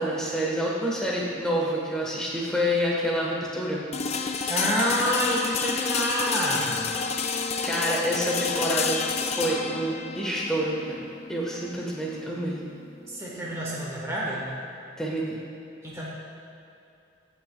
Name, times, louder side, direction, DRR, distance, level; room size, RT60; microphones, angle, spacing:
voice 1, 0.0-3.9 7.6-9.0 9.3-12.6 15.0-15.4, equal, 5° left, -4 dB, 1.2 m, -28 dB
sound 1, 3.9-13.8, left 5 dB, 35° left, 0.3 m, -30 dB
voice 2, 4.5-6.8 13.1-14.5 15.8-16.0, equal, 15° right, -5 dB, 1.3 m, -27 dB
17.0 x 6.0 x 2.3 m, 2.8 s
head